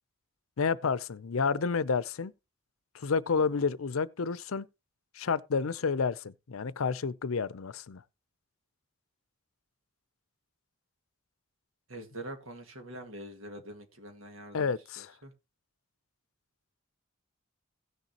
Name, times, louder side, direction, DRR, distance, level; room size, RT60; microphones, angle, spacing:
voice 1, 0.6-2.3 2.9-4.7 5.2-8.0 14.5-15.1, left 5 dB, 80° left, 0.6 m, -30 dB
voice 2, 11.9-15.3, right 1 dB, 75° right, 2.0 m, -45 dB
16.5 x 6.7 x 2.9 m
head